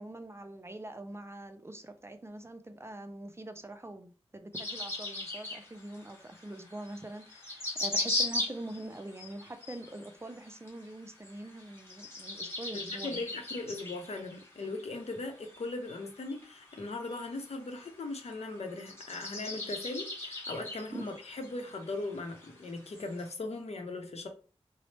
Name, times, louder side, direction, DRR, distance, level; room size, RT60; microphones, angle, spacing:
voice 1, 0.0-13.3 20.9-21.0, right 1 dB, 25° right, 0.4 m, -44 dB
sound 1, 4.5-23.3, left 2 dB, 20° left, 1.2 m, -39 dB
voice 2, 13.0-24.3, left 2 dB, 70° left, 0.7 m, -39 dB
4.0 x 2.0 x 3.2 m
wide cardioid pair, 95°, 11 cm